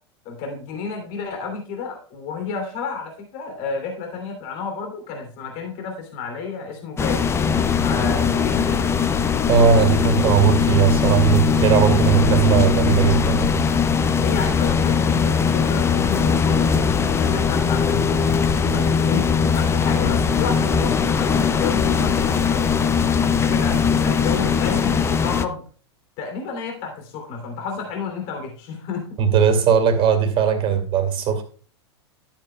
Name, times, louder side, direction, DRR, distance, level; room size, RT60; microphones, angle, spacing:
voice 1, 0.2-7.3 7.8-9.0 14.1-22.7 23.3-25.6 26.2-29.1 30.7-30.8, left 5 dB, 50° left, 3 dB, 2.9 m, -31 dB
sound 1, 7.0-25.4, left 6 dB, 20° left, 0.7 m, -20 dB
voice 2, 9.5-13.6 29.2-31.4, right 7 dB, 40° right, 6 dB, 2.4 m, -18 dB
12.0 x 8.9 x 2.3 m, 0.40 s
hypercardioid pair, 100°, 14 cm